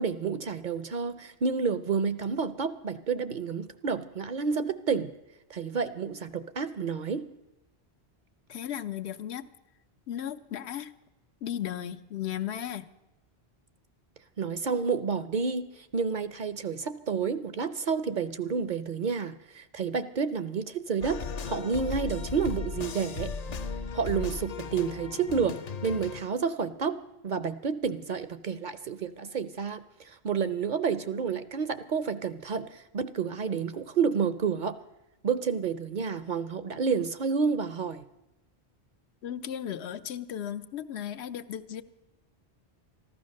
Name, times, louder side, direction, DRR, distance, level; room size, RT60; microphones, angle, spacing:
voice 1, 0.0-5.1 5.5-7.2 14.4-23.3 23.9-25.6 25.8-27.0 27.2-34.7 35.2-38.0, right 5 dB, 55° right, 13 dB, 0.6 m, -30 dB
voice 2, 8.5-9.5 10.1-10.9 11.4-12.9 39.2-41.8, left 10 dB, 75° left, 10 dB, 0.9 m, -35 dB
sound 1, 21.0-26.2, left 4 dB, 50° left, 0.5 m, -36 dB
14.5 x 12.5 x 6.4 m, 0.94 s
omnidirectional pair, 1.1 m